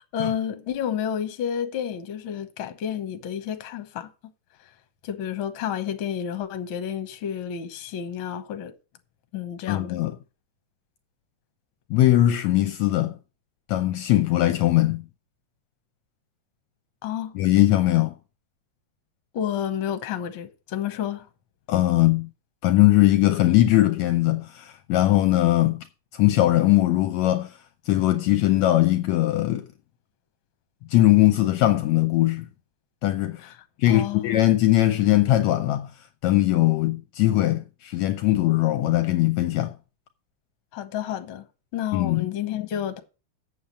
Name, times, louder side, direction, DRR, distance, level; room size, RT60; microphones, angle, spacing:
voice 1, 0.1-4.1 5.0-8.7 9.3-10.0 17.0-17.4 19.3-21.3 33.4-33.6 33.9-34.4 40.7-41.5 41.7-43.0, left 9 dB, 55° left, 1.6 m, -30 dB
voice 2, 9.7-10.1 11.9-13.1 13.7-15.0 17.3-18.1 21.7-22.3 22.6-25.8 26.1-27.5 27.9-29.7 30.9-32.5 33.0-33.4 33.8-35.9 36.2-39.7 41.9-42.3, left 15 dB, 75° left, 1.8 m, -20 dB
7.9 x 7.4 x 6.3 m
omnidirectional pair, 3.4 m